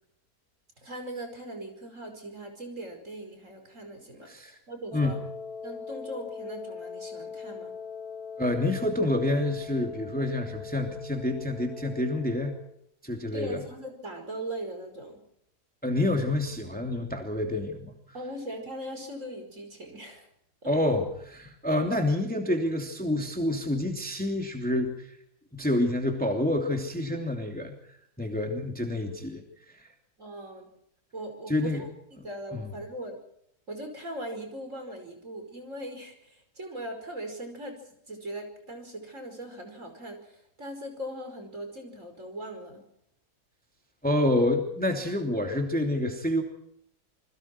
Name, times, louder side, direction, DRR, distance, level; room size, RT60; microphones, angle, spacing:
voice 1, 0.8-5.2 5.6-7.7 13.3-15.2 18.1-20.3 20.6-20.7 30.2-30.7 31.1-33.2 33.7-37.8 38.1-42.8, right 1 dB, 45° right, 5 dB, 5.7 m, -40 dB
voice 2, 4.3-4.6 4.9-5.1 8.4-12.6 13.0-13.6 15.8-18.0 20.7-25.1 25.5-27.7 28.2-29.4 31.5-31.9 32.5-32.6 44.0-46.4, left 1 dB, 5° left, 3 dB, 2.8 m, -28 dB
Wind instrument woodwind instrument, 4.9-12.8, left 6 dB, 40° left, 3.9 m, -41 dB
28.0 x 22.0 x 4.6 m, 0.74 s
omnidirectional pair, 1.8 m